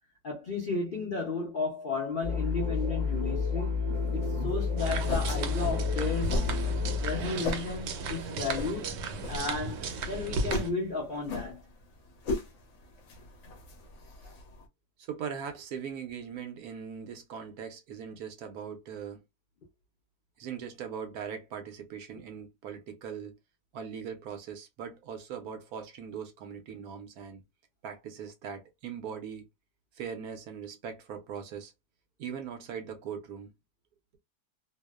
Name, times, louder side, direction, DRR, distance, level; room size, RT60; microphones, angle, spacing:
voice 1, 0.2-3.8 4.1-6.4 7.0-8.9 9.3-11.7, left 4 dB, 90° left, 0.4 m, -34 dB
sound 1, 2.2-7.3, left 5 dB, 45° right, 0.3 m, -30 dB
sound 2, 3.9-14.7, left 2 dB, 65° left, 0.7 m, -39 dB
sound 3, 4.8-10.7, right 3 dB, 85° right, 1.2 m, -35 dB
voice 2, 15.0-19.2 20.4-23.4 23.7-27.4 27.8-29.5 29.9-31.7 32.2-33.5, right 7 dB, 70° right, 1.0 m, -40 dB
2.8 x 2.0 x 2.2 m
omnidirectional pair, 1.8 m